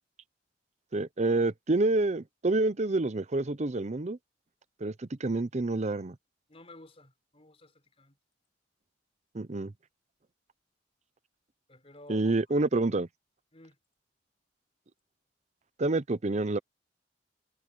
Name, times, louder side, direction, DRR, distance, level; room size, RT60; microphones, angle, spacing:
voice 1, 0.9-4.2 4.8-6.1 9.3-9.7 12.1-13.1 15.8-16.6, right 2 dB, 40° right, 0.7 m, -28 dB
voice 2, 6.5-8.2 11.7-12.3 13.5-13.8, left 1 dB, 35° left, 4.3 m, -53 dB
head